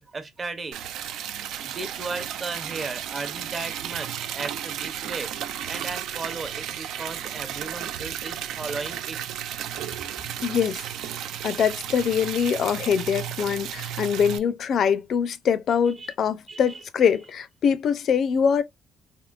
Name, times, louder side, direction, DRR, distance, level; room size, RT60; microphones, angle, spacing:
voice 1, 0.1-0.8 1.6-5.3 5.6-9.2 16.0-16.1 16.5-16.8, right 4 dB, 30° right, 0.7 m, -35 dB
Liquid, 0.7-14.4, right 10 dB, 75° right, 0.4 m, -34 dB
voice 2, 10.4-10.8 11.4-18.6, left 7 dB, 55° left, 0.5 m, -23 dB
3.6 x 2.9 x 2.4 m
cardioid pair, 115°, 0 cm